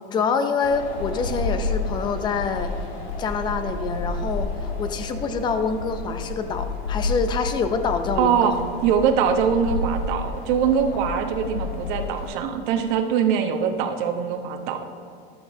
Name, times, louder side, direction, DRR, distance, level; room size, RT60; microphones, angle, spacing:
voice 1, 0.1-2.7 3.2-8.5 10.9-11.0, left 5 dB, 15° left, 8 dB, 0.4 m, -26 dB
Wind, 0.6-12.3, left 3 dB, 85° left, 1.9 m, -30 dB
voice 2, 8.2-8.5 8.8-14.8, right 7 dB, 50° right, 4 dB, 1.0 m, -22 dB
14.0 x 8.0 x 2.7 m, 2.3 s
supercardioid pair, 150°, 31 cm